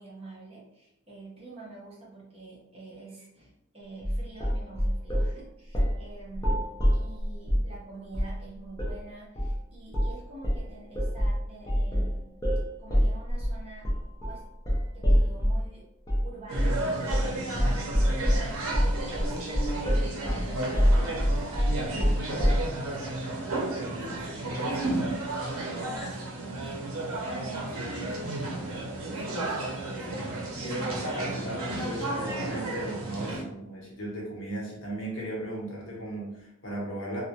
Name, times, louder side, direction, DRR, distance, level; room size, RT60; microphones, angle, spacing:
voice 1, 0.0-6.7 6.9-12.3 12.8-13.9 14.3-14.5 14.9-15.8 16.2-19.5 20.3-31.8 33.3-33.6, right 3 dB, 30° right, -4 dB, 0.6 m, -47 dB
sound 1, 4.0-5.3 5.7-6.0 6.3-7.7 8.1-8.4 8.8-9.0 9.4-9.6 9.9-10.2 10.4-15.7 16.1-16.3 16.5-16.8 17.1-17.3 17.6-22.7, equal, 15° left, 0.5 m, -25 dB
sound 2, 16.5-33.4, right 2 dB, 90° right, 0.6 m, -33 dB
voice 2, 20.1-20.5 30.6-37.2, right 1 dB, 60° left, -4 dB, 0.8 m, -36 dB
2.2 x 2.1 x 2.7 m, 0.83 s
head